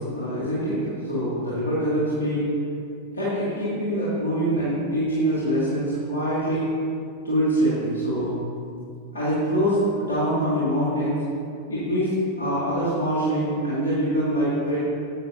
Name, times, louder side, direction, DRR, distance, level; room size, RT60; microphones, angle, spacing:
voice 1, 0.0-2.5 3.1-6.7 7.2-8.4 9.1-11.2 11.7-12.1 12.4-14.8, right 1 dB, 70° left, -9 dB, 2.0 m, -24 dB
10.5 x 8.3 x 2.7 m, 2.5 s
figure-of-eight pair, 90°, 0 cm